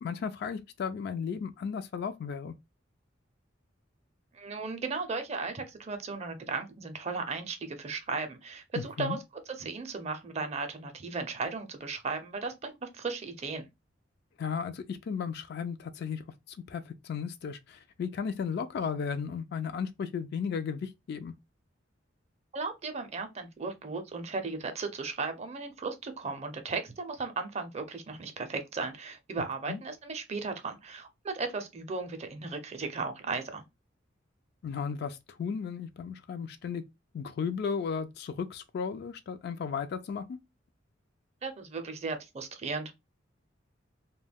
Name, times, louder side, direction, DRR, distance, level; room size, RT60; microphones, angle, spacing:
voice 1, 0.0-2.5 8.8-9.2 14.4-16.2 16.5-21.3 29.7-29.8 34.6-36.8 37.1-40.4, left 6 dB, 55° left, 0.3 m, -35 dB
voice 2, 4.3-9.2 9.5-13.6 22.5-33.6 41.4-42.9, right 4 dB, 35° right, 0.5 m, -36 dB
2.2 x 2.1 x 3.3 m
head